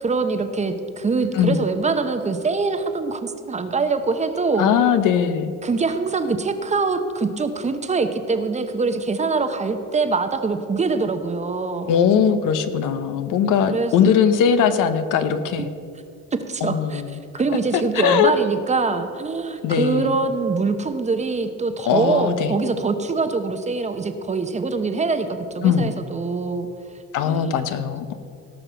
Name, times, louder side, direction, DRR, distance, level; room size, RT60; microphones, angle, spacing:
voice 1, 0.0-4.7 5.6-11.9 13.7-14.1 16.3-17.0 17.3-26.7 27.2-27.7, right 4 dB, 20° right, 8 dB, 0.8 m, -24 dB
voice 2, 4.6-5.5 11.9-15.7 16.6-17.2 17.9-18.3 19.6-20.2 21.8-22.5 25.6-25.9 27.1-28.1, left 7 dB, 80° left, 10 dB, 1.0 m, -20 dB
17.5 x 5.9 x 6.8 m, 2.3 s
cardioid pair, 135°, 31 cm